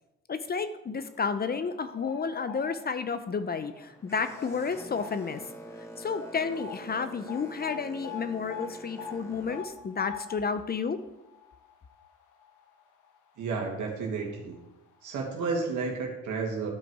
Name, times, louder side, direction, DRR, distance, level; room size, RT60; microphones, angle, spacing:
voice 1, 0.3-5.4 6.0-11.0, left 5 dB, 30° left, 12 dB, 0.6 m, -31 dB
sound 1, 1.4-3.2 3.6-3.8 4.4-5.5 5.7-5.8 6.1-13.2 13.5-13.6 14.5-14.6 14.9-15.0, left 7 dB, 80° left, 1.3 m, -44 dB
Boat Water vehicle, 3.4-9.6, right 1 dB, 10° left, 2.1 m, -46 dB
voice 2, 13.4-14.6 15.0-16.7, right 4 dB, 80° right, 0 dB, 2.0 m, -31 dB
12.0 x 5.1 x 4.8 m, 0.94 s
cardioid pair, 90°, 30 cm